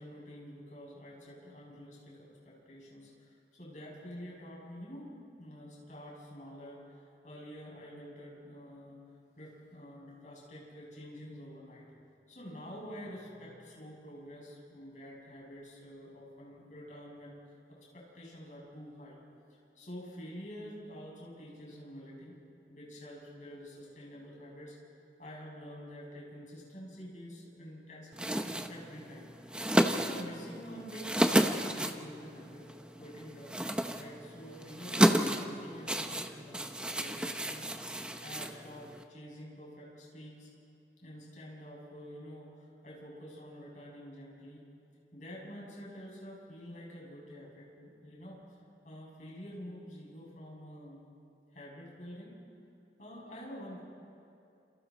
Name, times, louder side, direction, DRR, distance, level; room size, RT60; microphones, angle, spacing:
voice 1, 0.0-9.0 9.4-11.9 12.3-19.2 19.5-22.4 22.7-24.7 25.2-32.7 33.0-33.6 33.9-37.7 38.2-40.5 41.0-44.7 45.1-48.4 48.8-51.0 51.5-52.4 53.0-53.8, equal, 45° left, -4 dB, 7.0 m, -48 dB
sound 1, 28.1-39.0, equal, 5° right, 0.8 m, -32 dB
28.5 x 28.0 x 4.3 m, 2.7 s
head